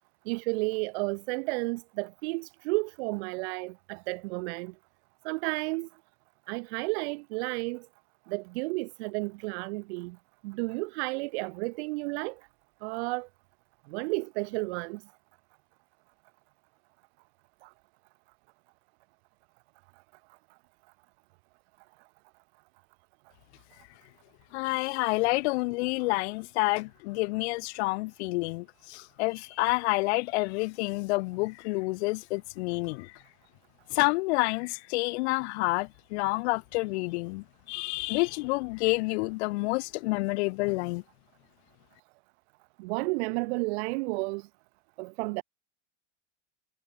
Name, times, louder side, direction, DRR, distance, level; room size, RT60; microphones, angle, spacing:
voice 1, 0.2-4.7 5.2-5.9 6.5-7.9 8.3-10.2 10.4-12.4 12.8-13.3 13.9-15.0 17.6-17.7 42.8-44.5 45.0-45.4, right 27 dB, 60° right, 1.5 m, -32 dB
voice 2, 24.5-33.1 33.9-41.0, left 25 dB, 65° left, 0.6 m, -29 dB
supercardioid pair, 150°, 37 cm